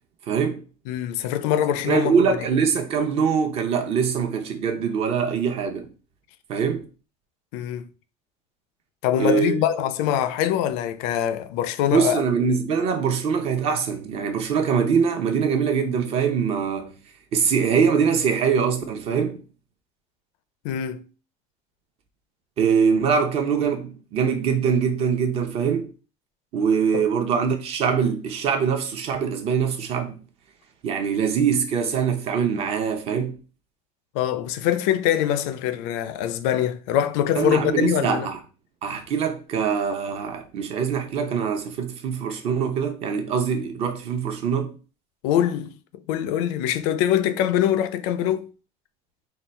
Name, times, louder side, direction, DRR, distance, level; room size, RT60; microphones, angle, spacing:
voice 1, 0.3-0.6 1.8-5.9 6.5-6.9 9.2-9.6 11.9-16.9 17.3-19.4 22.6-25.9 26.5-30.2 30.8-33.3 37.4-38.4 38.8-44.8, right 6 dB, 40° right, 0.7 m, -23 dB
voice 2, 0.9-2.4 7.5-7.9 9.0-12.2 20.6-21.1 26.9-27.1 34.1-38.3 45.2-45.7 46.1-48.5, left 10 dB, 90° left, 0.5 m, -23 dB
3.9 x 2.3 x 4.3 m
cardioid pair, 160°, 15 cm